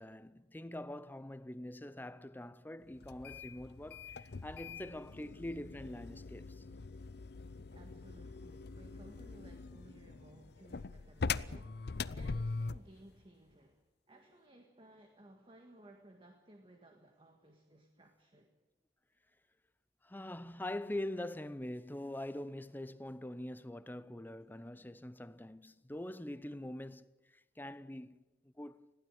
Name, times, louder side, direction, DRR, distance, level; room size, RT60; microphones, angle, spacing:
voice 1, 0.0-6.6 20.0-28.2 28.4-28.9, left 1 dB, 10° left, 0.7 m, -44 dB
sound 1, 3.0-12.9, left 4 dB, 60° left, 0.6 m, -42 dB
voice 2, 7.7-18.5, right 1 dB, 30° right, 1.8 m, -59 dB
21.0 x 15.5 x 9.2 m
head